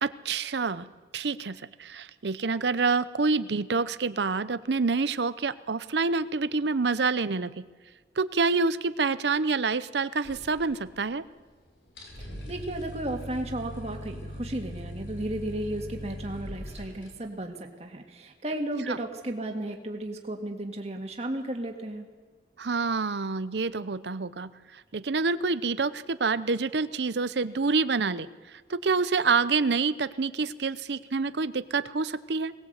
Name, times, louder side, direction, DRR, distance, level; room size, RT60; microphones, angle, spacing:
voice 1, 0.0-0.9 1.1-7.6 8.2-11.2 22.6-24.5 24.9-28.3 28.7-32.5, right 4 dB, 80° right, 15 dB, 0.7 m, -27 dB
sound 1, 10.2-11.3 11.5-11.6 11.9-17.1, equal, 85° left, 4.9 m, -40 dB
voice 2, 12.2-22.1, right 1 dB, 35° right, 3 dB, 2.0 m, -34 dB
21.5 x 19.0 x 8.1 m, 1.4 s
head